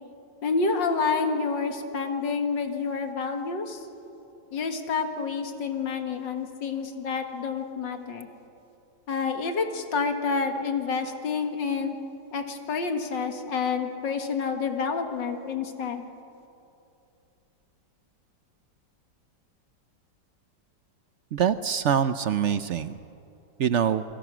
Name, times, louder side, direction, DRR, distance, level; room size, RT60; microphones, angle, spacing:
voice 1, 0.4-3.9 4.5-8.3 9.1-11.9 12.3-16.0, left 5 dB, 85° left, 6 dB, 2.4 m, -28 dB
voice 2, 21.3-22.9 23.6-24.0, right 8 dB, 65° right, 12 dB, 0.7 m, -24 dB
28.5 x 22.5 x 6.2 m, 2.7 s
omnidirectional pair, 1.9 m